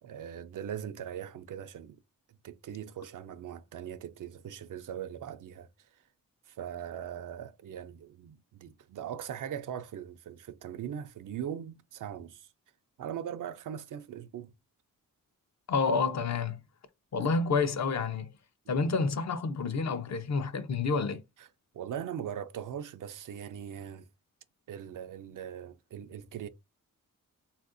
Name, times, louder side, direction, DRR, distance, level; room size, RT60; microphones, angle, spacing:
voice 1, 0.0-2.0 2.4-6.0 6.5-12.5 13.0-14.5 18.7-18.9 21.4-21.5 21.7-24.1 24.7-26.5, right 9 dB, 70° right, 0.5 m, -40 dB
voice 2, 15.7-16.6 17.1-18.3 18.7-21.2, left 4 dB, 55° left, 0.6 m, -29 dB
3.4 x 2.5 x 2.5 m
cardioid pair, 90°, 33 cm